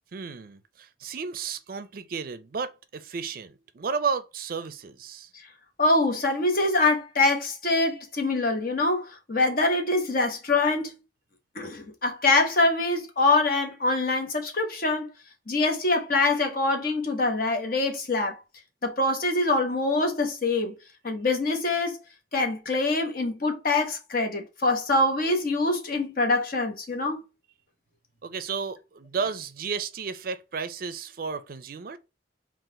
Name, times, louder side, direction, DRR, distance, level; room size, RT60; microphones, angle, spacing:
voice 1, 0.1-5.3 28.2-32.0, right 5 dB, 50° right, 0.4 m, -33 dB
voice 2, 5.8-10.9 11.5-15.1 15.5-18.3 18.8-20.7 21.0-22.0 22.3-27.2, left 2 dB, 50° left, 1.1 m, -24 dB
3.9 x 2.5 x 3.7 m
head